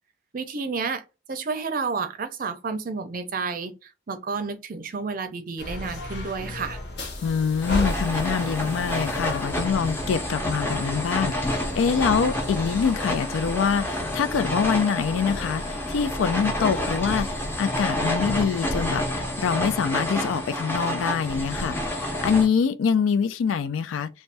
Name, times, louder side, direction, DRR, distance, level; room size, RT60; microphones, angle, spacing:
voice 1, 0.3-1.0 1.3-6.8, right 4 dB, 45° right, 0.5 m, -31 dB
sound 1, 5.6-17.6, left 1 dB, 55° left, 0.7 m, -35 dB
voice 2, 7.2-24.1, left 6 dB, 85° left, 0.3 m, -25 dB
sound 2, 7.6-22.5, left 1 dB, 10° left, 0.6 m, -29 dB
3.3 x 2.1 x 2.5 m
head